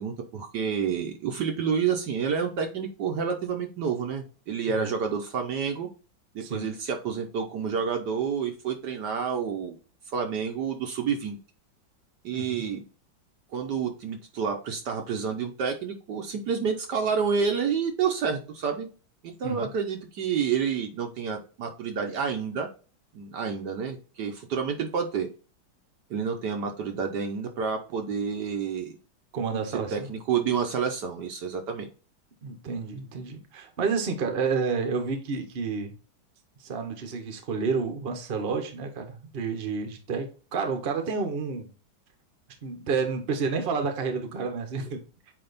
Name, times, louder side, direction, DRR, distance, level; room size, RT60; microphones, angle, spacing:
voice 1, 0.0-5.9 6.3-9.8 10.1-11.4 12.2-12.8 13.5-18.9 19.2-22.7 23.1-25.3 26.1-29.0 29.7-31.9, right 6 dB, 65° right, 1.3 m, -29 dB
voice 2, 29.3-30.1 32.4-35.9 36.6-41.7 42.6-45.0, right 5 dB, 35° right, 1.0 m, -30 dB
8.6 x 2.9 x 4.0 m
omnidirectional pair, 2.2 m